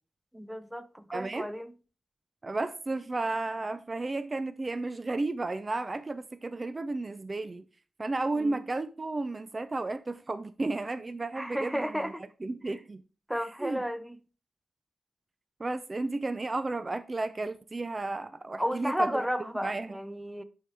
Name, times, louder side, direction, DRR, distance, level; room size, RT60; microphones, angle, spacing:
voice 1, 0.3-1.7 8.4-8.6 11.3-12.2 13.3-14.2 18.6-20.4, equal, 5° right, 0.8 m, -33 dB
voice 2, 1.1-1.5 2.4-7.6 8.0-12.1 12.4-13.0 13.6-13.8 15.6-19.2 19.6-20.0, right 2 dB, 30° right, 0.4 m, -33 dB
10.5 x 4.7 x 3.4 m
cardioid pair, 75°, 0 cm